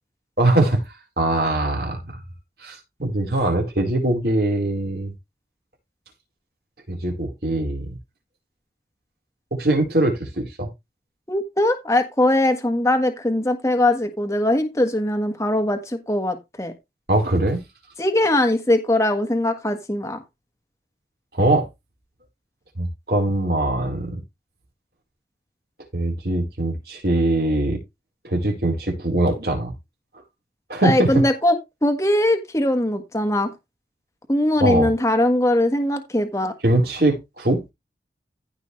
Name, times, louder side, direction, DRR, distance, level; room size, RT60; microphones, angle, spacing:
voice 1, 0.4-0.8 1.2-2.2 2.6-5.1 6.9-8.0 9.5-10.7 17.1-17.6 21.3-21.7 22.8-24.2 25.9-27.8 28.2-29.7 30.7-31.2 34.6-34.9 36.6-37.6, right 1 dB, 60° right, 4.2 m, -22 dB
voice 2, 11.3-16.7 18.0-20.2 30.8-33.5 34.3-36.5, left 1 dB, 15° left, 1.5 m, -21 dB
15.5 x 5.5 x 3.2 m
head